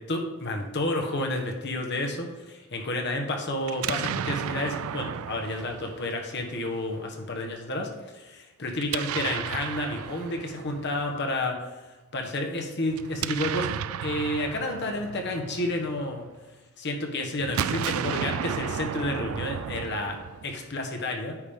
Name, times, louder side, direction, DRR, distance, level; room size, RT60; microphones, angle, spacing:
voice 1, 0.1-11.7 12.1-16.3 16.8-20.2 20.7-21.4, left 1 dB, 50° left, 2 dB, 1.3 m, -30 dB
Explosion, 3.6-6.7 8.8-11.0 12.9-16.3 17.4-20.8, right 9 dB, 70° right, 0.3 m, -33 dB
9.5 x 5.2 x 3.7 m, 1.2 s
head